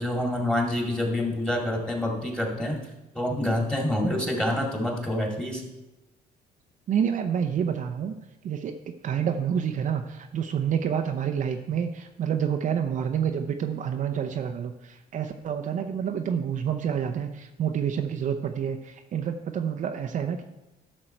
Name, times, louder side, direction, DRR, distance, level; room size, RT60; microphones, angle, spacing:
voice 1, 0.0-2.8 3.1-5.6, left 1 dB, 5° left, 0 dB, 2.3 m, -27 dB
voice 2, 6.9-8.1 8.4-20.4, right 8 dB, 50° right, 5 dB, 0.7 m, -28 dB
12.0 x 6.2 x 4.5 m, 0.99 s
cardioid pair, 110°, 17 cm